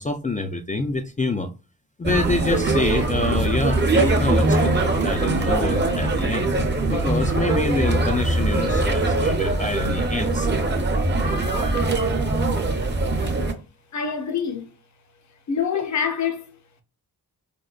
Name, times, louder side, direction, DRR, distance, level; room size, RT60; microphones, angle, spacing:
voice 1, 0.0-1.5 2.0-6.5 6.9-10.5, left 2 dB, 20° left, 0.3 m, -26 dB
sound 1, 2.0-13.5, right 2 dB, 30° right, 0.7 m, -22 dB
voice 2, 13.9-14.7 15.5-16.5, left 7 dB, 45° left, 0.7 m, -25 dB
4.9 x 2.1 x 2.3 m
wide cardioid pair, 90°, 38 cm